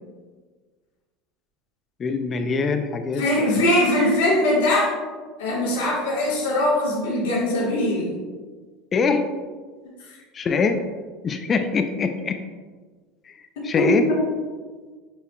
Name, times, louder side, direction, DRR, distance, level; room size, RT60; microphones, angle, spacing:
voice 1, 2.0-3.2 3.5-3.6 8.9-9.3 10.3-10.8 11.2-12.4 13.6-14.1, left 4 dB, 30° left, 7 dB, 0.4 m, -23 dB
voice 2, 3.1-4.9 5.4-8.2 10.1-10.2 13.6-14.3, left 1 dB, 80° left, -6 dB, 1.5 m, -21 dB
7.0 x 2.7 x 2.2 m, 1.4 s
supercardioid pair, 100°, 0 cm